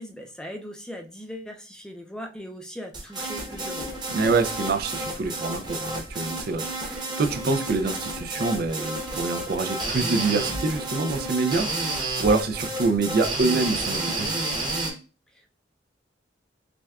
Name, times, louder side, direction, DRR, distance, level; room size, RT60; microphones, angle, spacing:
voice 1, 0.0-4.0 15.3-15.5, equal, 5° left, 0.4 m, -39 dB
sound 1, 2.9-14.9, right 2 dB, 25° right, 0.9 m, -31 dB
voice 2, 4.1-14.3, right 3 dB, 55° right, 0.4 m, -26 dB
5.9 x 2.2 x 2.3 m
head